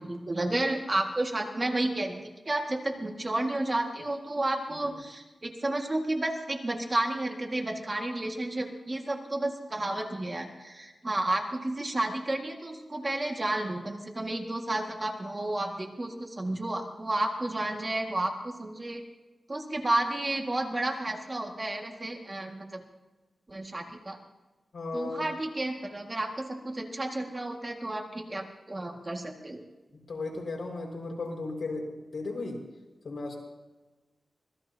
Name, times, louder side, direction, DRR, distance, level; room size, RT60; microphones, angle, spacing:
voice 1, 0.0-19.0 19.5-22.8 23.5-24.2 24.9-29.6, right 1 dB, 25° right, 2 dB, 1.9 m, -31 dB
voice 2, 24.7-25.2 30.1-32.6 33.0-33.4, left 3 dB, 65° left, 0 dB, 5.4 m, -35 dB
25.5 x 19.5 x 2.8 m, 1.2 s
wide cardioid pair, 130°, 0 cm